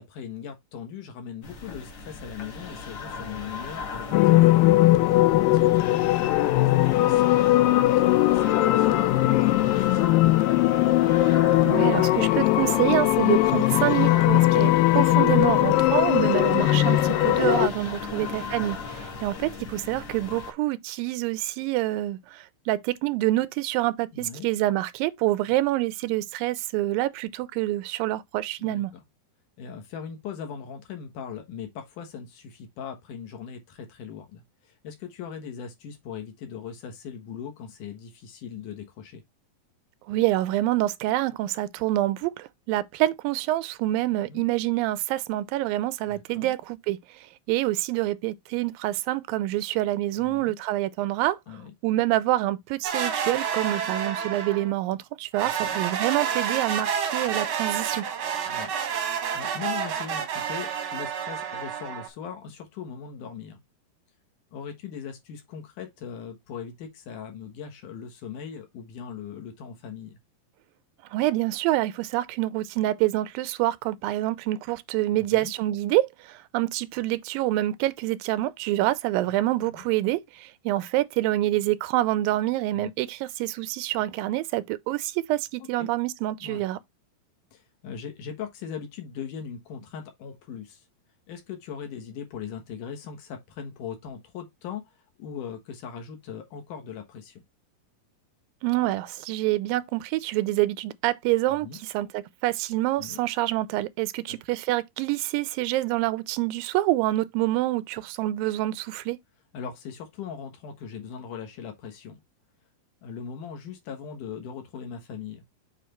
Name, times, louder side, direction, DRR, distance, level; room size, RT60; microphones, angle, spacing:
voice 1, 0.0-4.6 5.5-10.7 17.9-18.3 24.1-24.5 28.6-29.0 29.6-39.2 44.3-44.4 46.0-46.5 50.2-50.6 51.5-51.7 55.4-55.8 58.5-59.0 59.3-63.6 64.5-70.2 75.1-75.5 79.2-79.3 79.6-79.9 82.7-82.9 85.8-85.9 86.4-86.6 87.5-90.8 91.3-94.9 95.2-97.4 101.6-101.8 103.0-103.2 104.3-104.4 109.5-112.2 113.0-115.4, left 7 dB, 70° left, 2.8 m, -39 dB
sound 1, 1.4-20.5, left 4 dB, 50° left, 1.3 m, -38 dB
sound 2, 4.1-17.7, left 16 dB, 85° left, 2.3 m, -20 dB
voice 2, 11.6-28.9 40.1-47.0 47.5-51.4 51.8-58.0 71.1-86.8 98.6-109.2, right 16 dB, 90° right, 2.3 m, -26 dB
sound 3, 52.8-54.7 55.3-62.1, right 7 dB, 60° right, 1.4 m, -29 dB
7.5 x 3.4 x 4.3 m
omnidirectional pair, 4.0 m